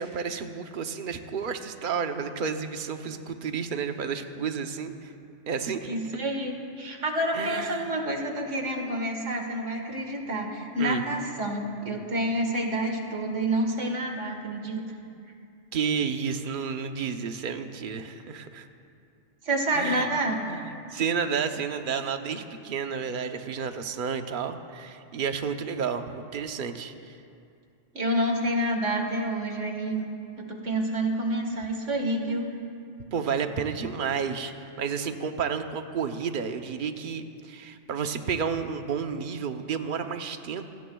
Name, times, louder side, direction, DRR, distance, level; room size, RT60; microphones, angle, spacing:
voice 1, 0.0-5.1 5.5-5.9 7.3-7.9 10.8-11.0 15.7-18.7 19.7-20.1 20.5-27.1 33.1-40.7, right 6 dB, 50° right, 7 dB, 0.9 m, -31 dB
voice 2, 5.8-14.8 19.4-20.4 27.9-30.1 30.4-32.5, right 1 dB, 75° right, 3 dB, 1.9 m, -28 dB
27.0 x 17.0 x 2.3 m, 2.5 s
omnidirectional pair, 1.3 m